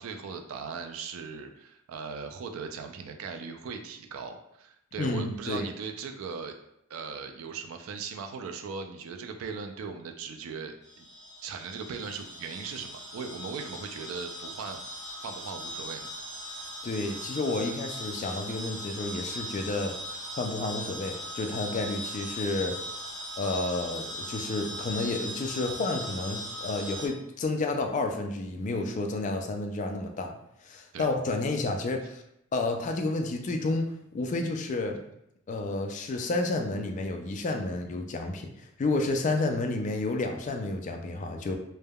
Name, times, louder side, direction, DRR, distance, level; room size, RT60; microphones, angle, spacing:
voice 1, 0.0-6.5 6.9-11.1 11.4-14.8 15.2-16.1 30.9-31.1, right 5 dB, 80° right, 5 dB, 0.3 m, -38 dB
voice 2, 5.0-5.7 16.8-20.0 20.3-22.8 23.4-30.4 30.6-32.2 32.5-35.0 35.5-38.5 38.8-41.5, left 2 dB, 35° left, 4 dB, 0.3 m, -30 dB
sound 1, 10.8-27.1, equal, 20° left, 1.3 m, -39 dB
3.3 x 2.1 x 2.2 m, 0.79 s
head